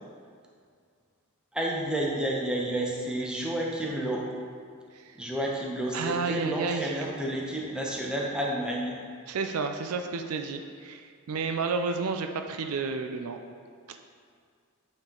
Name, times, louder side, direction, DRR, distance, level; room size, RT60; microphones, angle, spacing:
voice 1, 1.5-4.3 5.1-9.0, right 1 dB, 5° right, -3 dB, 0.9 m, -30 dB
voice 2, 5.9-7.1 9.3-13.4, right 4 dB, 75° right, 6 dB, 0.4 m, -31 dB
8.7 x 4.5 x 3.8 m, 2.1 s
head